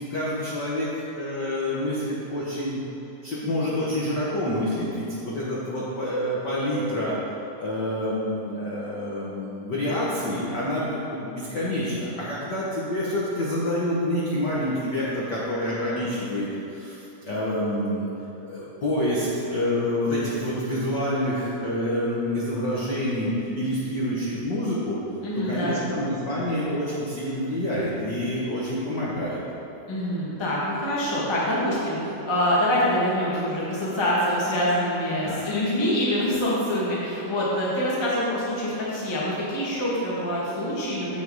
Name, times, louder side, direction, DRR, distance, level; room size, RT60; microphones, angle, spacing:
voice 1, 0.0-2.8 3.2-7.2 7.6-18.1 18.4-25.0 25.3-29.4 35.2-35.4, left 1 dB, 70° left, -7 dB, 1.0 m, -27 dB
voice 2, 25.2-25.9 29.9-41.2, equal, 20° left, -7 dB, 0.6 m, -25 dB
7.8 x 6.6 x 4.7 m, 3.0 s
omnidirectional pair, 3.6 m